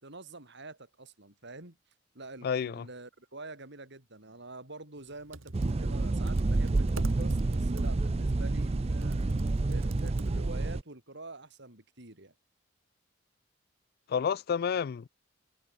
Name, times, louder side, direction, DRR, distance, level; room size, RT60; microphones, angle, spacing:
voice 1, 0.0-1.8 2.1-9.2 9.6-12.3, right 2 dB, 60° right, 4.6 m, -47 dB
voice 2, 2.4-2.9 14.1-15.1, left 7 dB, 50° left, 0.4 m, -30 dB
Computer keyboard, 5.1-10.7, right 1 dB, 90° right, 2.1 m, -43 dB
sound 1, 5.5-10.8, right 2 dB, 30° right, 0.5 m, -29 dB
head